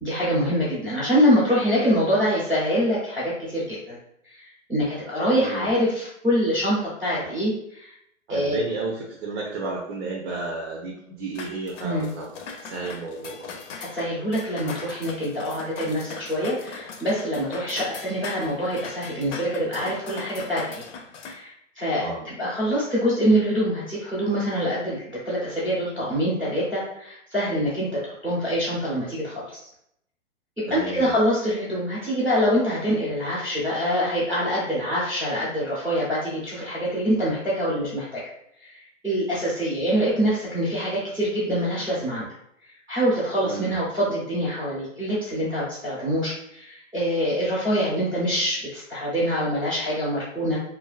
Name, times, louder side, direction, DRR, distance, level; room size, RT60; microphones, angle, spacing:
voice 1, 0.0-4.0 4.2-7.9 8.3-8.6 11.8-12.1 13.8-20.8 21.2-29.6 30.6-38.2 38.6-38.8 39.0-42.3 42.9-50.6, equal, 5° right, -9 dB, 0.5 m, -25 dB
voice 2, 5.4-5.7 7.2-7.3 8.3-12.3 12.6-13.5 21.9-22.3 30.7-31.1 43.4-43.8, right 3 dB, 55° right, -2 dB, 0.6 m, -32 dB
sound 1, 11.3-21.3, left 5 dB, 75° left, 0.5 m, -40 dB
2.4 x 2.3 x 2.3 m, 0.74 s
hypercardioid pair, 145°, 37 cm